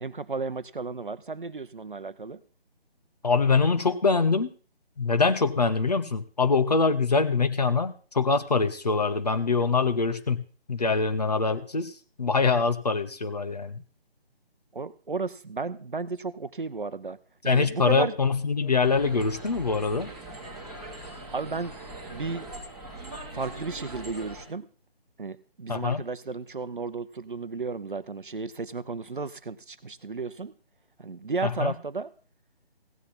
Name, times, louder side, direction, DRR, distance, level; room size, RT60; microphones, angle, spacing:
voice 1, 0.0-2.4 14.7-17.2 17.4-18.1 21.3-21.7 22.1-22.5 23.3-24.7 25.2-30.5 31.0-32.1, right 4 dB, 55° right, 14 dB, 0.8 m, -33 dB
voice 2, 3.2-4.5 5.0-13.8 17.4-20.1 25.7-26.0 31.4-31.7, left 4 dB, 40° left, 11 dB, 1.0 m, -24 dB
sound 1, 18.8-24.4, right 1 dB, ahead, 1.5 m, -41 dB
16.0 x 9.7 x 4.1 m, 0.39 s
figure-of-eight pair, 155°, 31 cm